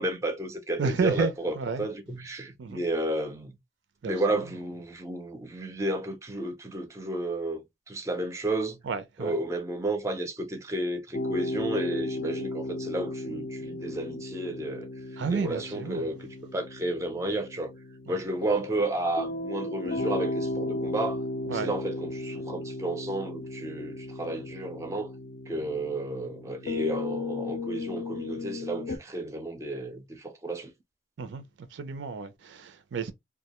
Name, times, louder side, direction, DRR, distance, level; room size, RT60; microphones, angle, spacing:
voice 1, 0.0-3.6 4.0-7.6 7.9-8.8 9.2-14.9 15.3-17.7 18.1-25.1 25.5-30.7, right 1 dB, 15° right, 0.4 m, -32 dB
voice 2, 0.8-1.9 2.6-2.8 4.0-4.4 8.8-9.4 15.2-16.1 18.1-18.2 21.5-21.7 31.2-31.4 31.7-33.1, right 5 dB, 85° right, 0.4 m, -31 dB
sound 1, 11.1-29.0, left 2 dB, 50° left, 0.4 m, -35 dB
2.2 x 2.1 x 2.9 m
head